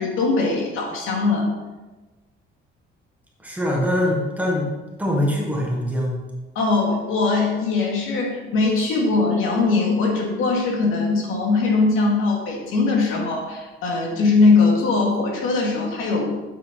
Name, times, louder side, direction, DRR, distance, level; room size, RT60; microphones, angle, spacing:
voice 1, 0.0-1.5 6.5-16.3, left 3 dB, 75° left, -1 dB, 2.4 m, -21 dB
voice 2, 3.4-4.7 5.0-6.1, left 1 dB, 5° right, -3 dB, 1.6 m, -23 dB
9.2 x 7.3 x 4.2 m, 1.2 s
cardioid pair, 175°, 21 cm